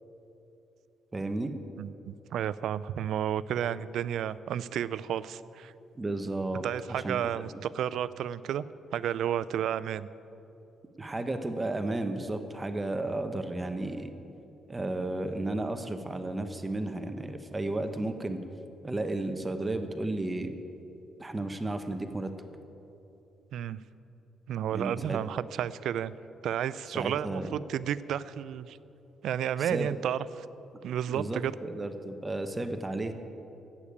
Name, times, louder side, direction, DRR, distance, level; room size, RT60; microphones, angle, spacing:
voice 1, 1.1-1.5 6.0-6.6 7.0-7.2 11.0-14.1 14.7-18.4 18.8-20.5 21.2-22.3 24.7-25.2 26.9-27.6 29.6-29.9 31.1-33.1, right 2 dB, 20° right, 8 dB, 0.9 m, -33 dB
voice 2, 1.8-5.7 6.6-8.7 8.9-10.1 23.5-23.8 24.5-26.1 26.4-28.8 29.2-30.5 30.8-31.5, right 10 dB, 75° right, 17 dB, 0.4 m, -32 dB
11.5 x 8.4 x 8.6 m, 3.0 s
cardioid pair, 90°, 0 cm